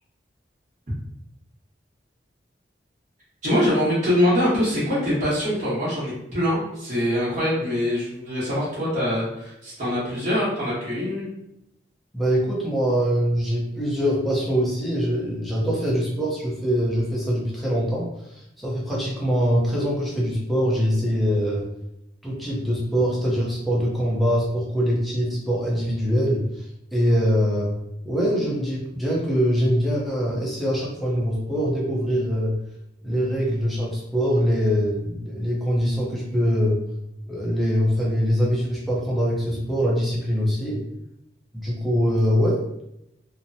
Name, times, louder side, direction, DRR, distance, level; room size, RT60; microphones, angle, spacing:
voice 1, 3.4-11.3, left 1 dB, 40° right, -11 dB, 1.1 m, -23 dB
voice 2, 12.1-21.7 22.2-26.7 26.9-27.7 28.0-32.5 33.0-36.8 37.3-40.8 41.5-42.8, equal, ahead, -5 dB, 0.6 m, -23 dB
2.9 x 2.1 x 2.6 m, 0.82 s
head